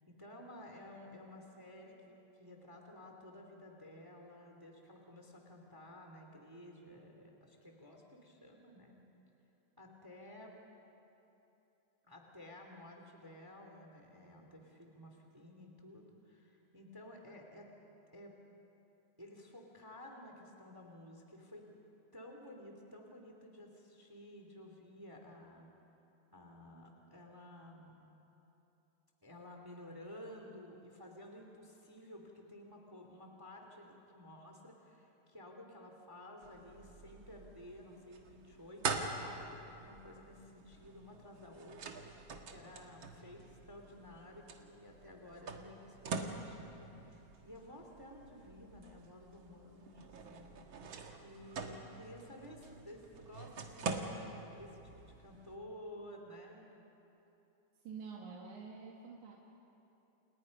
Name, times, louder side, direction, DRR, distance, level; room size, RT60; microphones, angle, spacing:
voice 1, 0.0-9.0 9.8-10.6 12.0-17.7 18.1-18.3 19.2-21.7 22.1-25.7 26.3-28.0 29.2-42.2 42.5-50.6 51.2-54.8 55.2-56.7, left 1 dB, 10° right, 2 dB, 2.5 m, -53 dB
sound 1, 36.4-55.6, right 4 dB, 50° right, 2.0 m, -45 dB
voice 2, 57.8-59.4, right 5 dB, 90° right, -2 dB, 3.4 m, -48 dB
29.5 x 29.0 x 5.4 m, 3.0 s
omnidirectional pair, 3.4 m